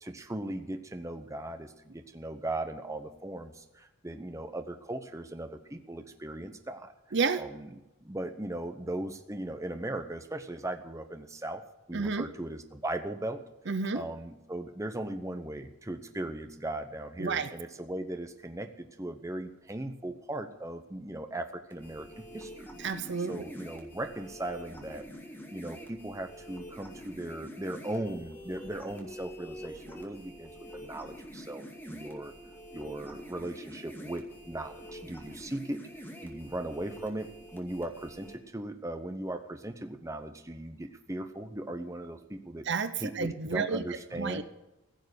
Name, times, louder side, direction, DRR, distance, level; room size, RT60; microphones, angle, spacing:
voice 1, 0.0-6.9 7.4-7.7 8.0-11.6 11.9-13.4 13.9-22.8 23.3-25.1 25.5-32.3 32.7-42.7 43.0-44.4, right 1 dB, 15° right, 7 dB, 0.8 m, -38 dB
voice 2, 7.1-7.4 11.9-12.3 13.7-14.0 17.2-17.5 22.8-23.4 42.7-43.8 44.2-44.4, right 4 dB, 50° right, 12 dB, 0.7 m, -30 dB
sound 1, 21.7-38.3, equal, 10° left, 2.3 m, -46 dB
15.5 x 7.4 x 9.8 m, 1.0 s
head